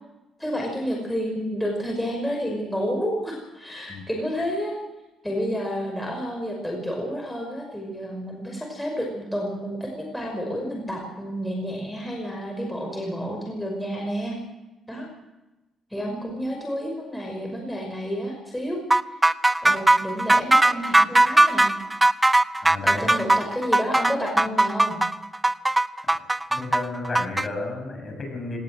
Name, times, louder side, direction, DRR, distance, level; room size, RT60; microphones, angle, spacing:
voice 1, 0.4-4.8 5.2-14.4 14.9-15.1 15.9-18.8 19.6-21.7 22.8-25.0, equal, 5° left, 0 dB, 5.6 m, -30 dB
sound 1, 18.9-27.5, right 2 dB, 10° right, 0.7 m, -19 dB
voice 2, 22.6-23.2 26.0-26.2 26.5-28.6, left 2 dB, 30° left, 2 dB, 7.4 m, -32 dB
19.0 x 18.5 x 7.8 m, 1.0 s
cardioid pair, 90°, 0 cm